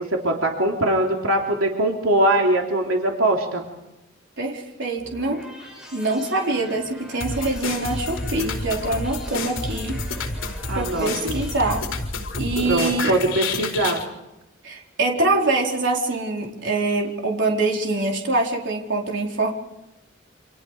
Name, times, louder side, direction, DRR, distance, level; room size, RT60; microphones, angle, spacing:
voice 1, 0.0-3.6 10.7-11.4 12.6-14.0, right 1 dB, 85° right, 0 dB, 3.4 m, -22 dB
voice 2, 4.4-5.4 5.9-10.0 10.7-11.8 12.3-13.1 14.6-19.5, right 2 dB, 60° right, 0 dB, 4.5 m, -24 dB
sound 1, 5.0-11.8, equal, 5° right, 7.9 m, -42 dB
sound 2, 7.2-14.0, left 3 dB, 70° left, 4.7 m, -29 dB
29.0 x 27.0 x 5.0 m, 0.93 s
head